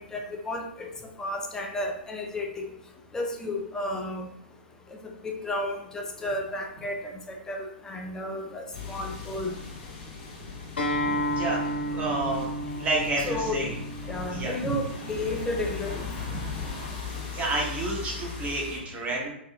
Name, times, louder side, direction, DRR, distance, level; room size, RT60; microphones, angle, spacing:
voice 1, 0.1-0.9 1.2-2.7 3.1-4.3 5.2-9.5 13.3-13.6 14.1-16.1, left 1 dB, 10° left, 3 dB, 0.4 m, -32 dB
sound 1, 8.7-18.8, left 5 dB, 40° left, 0.9 m, -38 dB
Acoustic guitar, 10.8-16.0, equal, 80° left, 1.1 m, -32 dB
voice 2, 11.1-12.5 12.8-13.7 14.3-14.7 16.3-16.4 17.3-19.3, right 2 dB, 20° right, -3 dB, 1.0 m, -30 dB
4.6 x 2.3 x 2.2 m, 0.75 s
hypercardioid pair, 130°, 6 cm